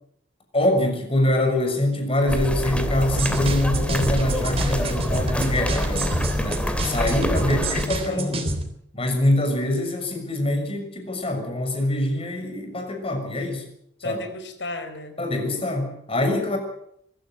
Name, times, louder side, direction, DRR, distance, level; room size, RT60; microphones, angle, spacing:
voice 1, 0.5-6.1 6.4-8.4 8.9-13.6 14.0-14.2 15.2-16.6, left 1 dB, 35° left, 4 dB, 6.4 m, -24 dB
sound 1, 2.3-7.9, equal, 5° left, 2.7 m, -26 dB
sound 2, 3.1-8.6, right 1 dB, 35° right, 3.7 m, -28 dB
voice 2, 7.3-7.8 8.1-8.5 14.0-15.2, left 2 dB, 80° left, 9 dB, 4.5 m, -35 dB
24.0 x 15.0 x 9.3 m, 0.72 s
head